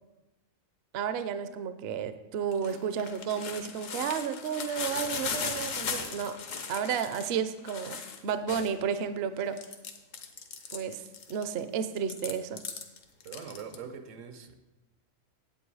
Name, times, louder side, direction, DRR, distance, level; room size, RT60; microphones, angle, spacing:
voice 1, 0.9-6.4 6.7-8.0 8.2-9.6 10.7-12.6, right 7 dB, 60° right, 11 dB, 0.7 m, -32 dB
sound 1, 2.5-8.9 9.4-11.6 12.0-13.8, left 5 dB, 80° left, 1.3 m, -37 dB
voice 2, 13.2-14.5, right 6 dB, 80° right, 9 dB, 1.2 m, -43 dB
9.1 x 8.3 x 4.7 m, 1.0 s
omnidirectional pair, 1.3 m